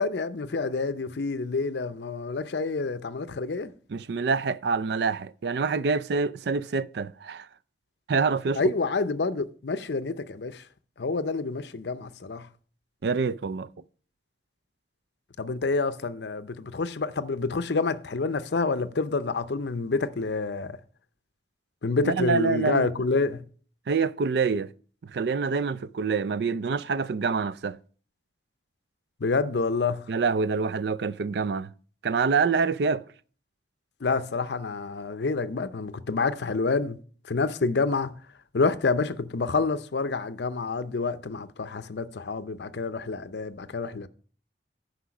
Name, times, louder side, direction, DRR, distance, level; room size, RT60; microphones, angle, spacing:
voice 1, 0.0-3.7 8.6-10.6 11.0-12.5 15.4-20.8 21.8-23.4 29.2-30.0 34.0-37.0 37.3-38.1 38.5-44.1, left 4 dB, 75° left, 0.6 m, -28 dB
voice 2, 3.9-7.5 8.1-8.6 13.0-13.7 22.0-22.9 23.9-24.7 25.0-27.8 30.1-31.7 32.0-33.0, right 5 dB, 70° right, 0.4 m, -26 dB
10.0 x 5.1 x 5.8 m
head